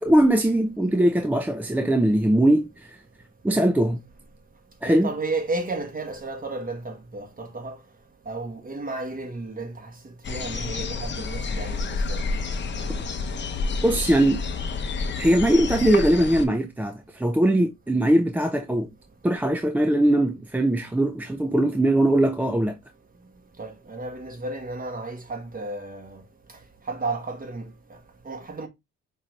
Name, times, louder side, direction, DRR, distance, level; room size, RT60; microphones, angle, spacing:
voice 1, 0.0-3.0 3.4-4.0 4.8-5.1 13.8-14.4 15.2-18.9 19.2-22.8, right 1 dB, 5° right, 0.4 m, -21 dB
voice 2, 4.8-7.8 8.2-12.2 12.8-13.0 23.6-26.2 26.9-27.7 28.2-28.7, right 3 dB, 25° right, 1.3 m, -33 dB
sound 1, 10.2-16.5, left 4 dB, 35° left, 0.7 m, -29 dB
5.3 x 2.6 x 3.1 m
cardioid pair, 90°, 33 cm